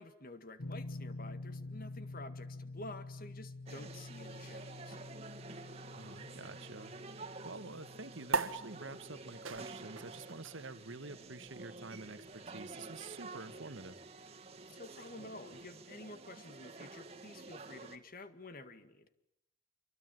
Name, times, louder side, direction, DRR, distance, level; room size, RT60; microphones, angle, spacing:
voice 1, 0.0-5.0 14.7-19.1, left 2 dB, 45° left, 10 dB, 2.0 m, -50 dB
sound 1, 0.6-13.5, left 2 dB, 75° left, 2.0 m, -49 dB
sound 2, 3.7-18.0, right 3 dB, 30° right, 2.0 m, -50 dB
voice 2, 5.9-6.9 7.4-14.0, right 3 dB, 70° right, 11 dB, 1.5 m, -48 dB
sound 3, 8.3-15.1, right 4 dB, 85° right, 1.6 m, -42 dB
27.0 x 23.5 x 9.1 m, 0.83 s
head